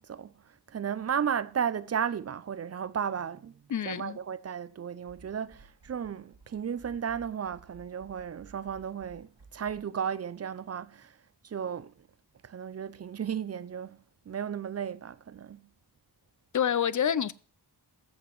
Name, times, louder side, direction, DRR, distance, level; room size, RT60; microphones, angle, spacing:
voice 1, 0.0-3.6 3.9-11.2 11.4-12.1 12.4-15.7, right 8 dB, 40° right, 0.4 m, -34 dB
voice 2, 3.7-4.2 16.5-17.3, left 9 dB, 45° left, 0.5 m, -27 dB
sound 1, 5.0-9.8, right 3 dB, 75° right, 2.0 m, -56 dB
22.0 x 7.8 x 3.1 m
wide cardioid pair, 100°, 41 cm